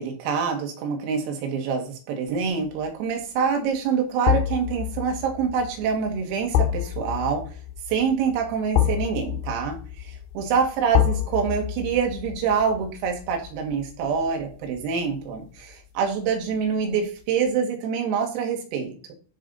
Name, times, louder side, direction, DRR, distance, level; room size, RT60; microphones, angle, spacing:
voice 1, 0.0-7.4 7.9-19.1, right 6 dB, 90° right, 3 dB, 4.7 m, -26 dB
sound 1, 2.5-2.8 4.3-15.3 15.6-15.7, left 11 dB, 75° left, 3.4 m, -28 dB
14.0 x 5.6 x 4.0 m, 0.39 s
omnidirectional pair, 6.0 m